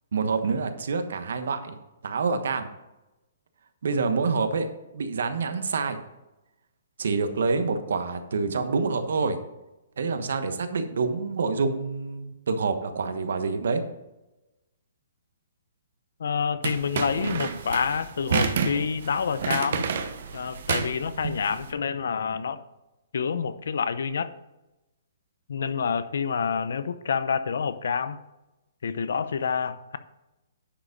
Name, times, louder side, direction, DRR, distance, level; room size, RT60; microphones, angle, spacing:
voice 1, 0.1-1.8 2.0-2.7 3.8-4.7 4.9-6.0 7.0-9.4 10.0-13.8, right 4 dB, 70° right, 8 dB, 1.2 m, -27 dB
voice 2, 16.2-19.8 20.3-22.6 23.1-24.3 25.5-28.2 28.8-30.0, left 6 dB, 70° left, 13 dB, 0.7 m, -28 dB
sound 1, 16.6-21.7, right 6 dB, 50° right, 1.0 m, -29 dB
10.0 x 5.0 x 5.2 m, 0.99 s
hypercardioid pair, 175°, 0 cm